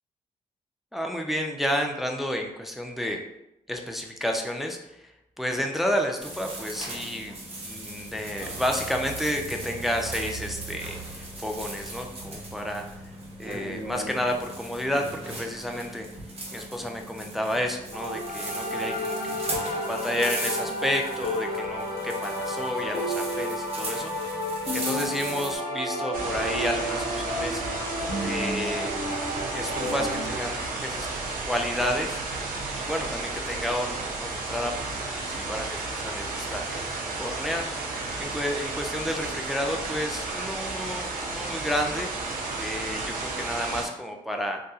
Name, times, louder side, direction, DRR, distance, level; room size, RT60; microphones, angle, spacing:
voice 1, 0.9-3.2 3.7-4.8 5.4-7.4 7.6-12.9 13.4-16.1 16.5-19.4 19.9-24.1 24.7-27.6 28.2-29.0 29.5-31.1 31.4-32.2 32.8-34.7 35.1-36.6 37.2-37.7 38.2-42.1 42.6-44.6, equal, ahead, 2 dB, 0.4 m, -31 dB
sound 1, 6.2-25.6, right 2 dB, 45° right, 0.9 m, -38 dB
sound 2, 17.9-30.4, equal, 75° left, 0.7 m, -31 dB
sound 3, 26.1-43.9, right 3 dB, 80° right, 0.5 m, -33 dB
2.6 x 2.4 x 2.3 m, 0.85 s
supercardioid pair, 55°, 15 cm